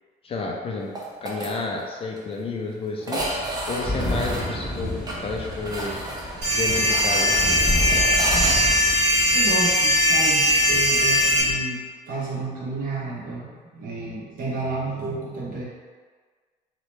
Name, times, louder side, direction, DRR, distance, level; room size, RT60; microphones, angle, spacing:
voice 1, 0.2-0.9 1.2-3.3 3.7-4.9 5.2-6.0 6.5-7.6, left 3 dB, 35° left, 0 dB, 0.4 m, -30 dB
sound 1, 1.0-1.5 1.8-1.9 2.2-2.3 3.0-8.6, right 1 dB, 25° right, 0.5 m, -32 dB
sound 2, 3.2-11.6, left 1 dB, ahead, 0.8 m, -31 dB
sound 3, 6.4-11.4, equal, 85° right, 1.1 m, -20 dB
voice 2, 9.3-11.8 12.1-15.6, right 3 dB, 55° right, -6 dB, 0.9 m, -31 dB
2.8 x 2.1 x 3.1 m, 1.5 s
cardioid pair, 110°, 17 cm